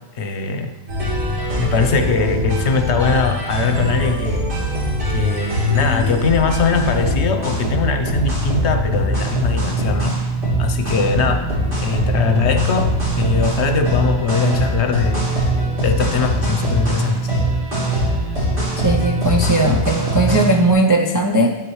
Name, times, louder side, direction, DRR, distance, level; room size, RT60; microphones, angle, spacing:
voice 1, 0.1-0.7 1.5-4.5 5.1-10.2 10.6-11.5 11.8-15.3 15.8-17.3, left 5 dB, 70° left, 6 dB, 1.1 m, -21 dB
sound 1, 0.9-20.7, equal, 70° right, 3.6 m, -21 dB
voice 2, 18.8-21.6, right 2 dB, 30° right, 2 dB, 0.3 m, -17 dB
9.3 x 8.6 x 3.1 m, 1.1 s
omnidirectional pair, 1.2 m